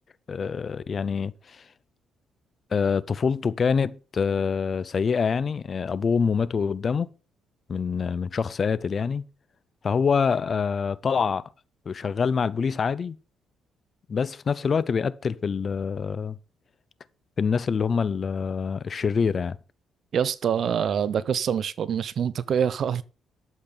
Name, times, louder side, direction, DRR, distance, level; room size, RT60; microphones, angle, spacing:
voice 1, 0.3-1.6 2.7-7.1 7.7-9.2 9.8-11.4 11.9-13.2 14.1-16.4 17.4-19.6, left 6 dB, 45° left, 0.7 m, -25 dB
voice 2, 20.1-23.0, right 8 dB, 60° right, 0.7 m, -25 dB
12.0 x 7.4 x 4.0 m
cardioid pair, 90°, 0 cm